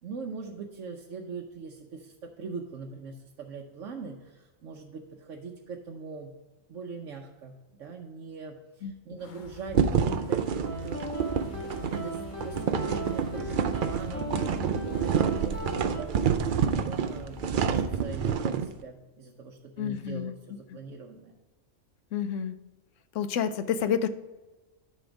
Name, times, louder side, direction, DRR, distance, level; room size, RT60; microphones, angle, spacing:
voice 1, 0.0-6.3 6.7-21.4, right 4 dB, 75° right, 0 dB, 1.1 m, -42 dB
Wind, 9.2-18.4, left 6 dB, 50° left, 0.7 m, -44 dB
sound 1, 9.7-18.7, right 7 dB, 55° right, 0.6 m, -28 dB
sound 2, 10.6-16.0, right 2 dB, 10° left, 1.7 m, -37 dB
voice 2, 19.8-20.3 20.7-20.8 22.1-22.6 23.1-24.1, left 8 dB, 75° left, 12 dB, 1.0 m, -29 dB
10.5 x 4.4 x 5.1 m, 1.2 s
omnidirectional pair, 1.3 m